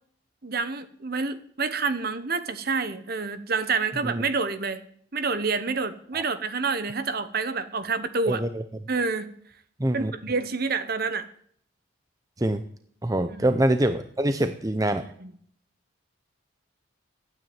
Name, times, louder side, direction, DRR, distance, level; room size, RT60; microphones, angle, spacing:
voice 1, 0.4-4.8 5.1-8.4 8.9-9.3 9.9-11.3 13.3-13.5 15.2-15.3, right 4 dB, 50° right, 12 dB, 1.1 m, -28 dB
voice 2, 8.3-8.6 9.8-10.1 12.4-12.6 13.0-15.0, right 1 dB, 15° right, 9 dB, 0.6 m, -24 dB
12.5 x 9.3 x 8.9 m, 0.63 s
head